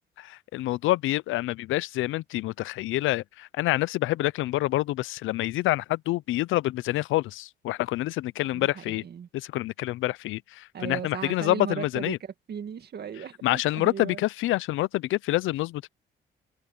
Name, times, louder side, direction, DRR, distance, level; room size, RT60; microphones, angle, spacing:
voice 1, 0.2-9.0 9.3-12.2 13.4-15.9, left 17 dB, 85° left, 0.5 m, -27 dB
voice 2, 8.4-9.3 10.7-14.2, right 7 dB, 55° right, 2.1 m, -37 dB
cardioid pair, 90°, 20 cm